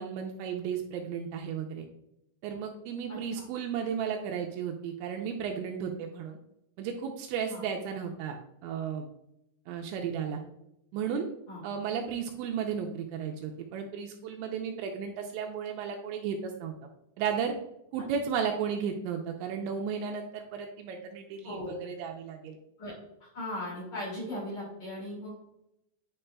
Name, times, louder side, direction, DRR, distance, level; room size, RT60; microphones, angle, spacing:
voice 1, 0.0-1.9 2.4-6.4 6.8-8.4 8.6-9.1 9.7-10.4 10.9-11.3 11.6-16.7 17.2-17.5 17.9-22.6, right 7 dB, 80° right, 3 dB, 2.7 m, -34 dB
voice 2, 3.1-3.4 7.5-7.6 11.5-11.6 21.4-21.7 22.8-22.9 23.2-25.4, left 1 dB, 45° left, -6 dB, 2.7 m, -38 dB
9.8 x 4.7 x 2.2 m, 0.83 s
omnidirectional pair, 5.5 m